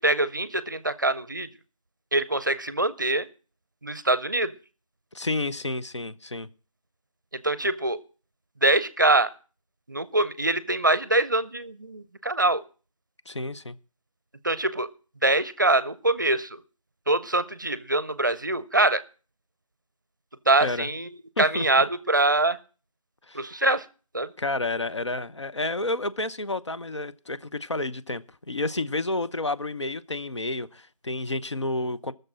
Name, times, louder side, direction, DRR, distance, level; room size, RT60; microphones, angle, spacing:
voice 1, 0.0-1.5 2.1-3.3 3.8-4.5 7.3-8.0 8.6-9.3 9.9-12.6 14.4-14.9 15.2-16.6 17.1-19.0 20.5-21.1 21.4-22.6 23.3-23.9 24.1-24.3, right 2 dB, 35° right, 0.6 m, -24 dB
voice 2, 5.1-6.5 13.3-13.8 20.6-20.9 21.4-21.7 23.3-23.6 24.4-32.1, left 2 dB, 55° left, 0.8 m, -30 dB
18.5 x 6.8 x 6.2 m
figure-of-eight pair, 170°, 18 cm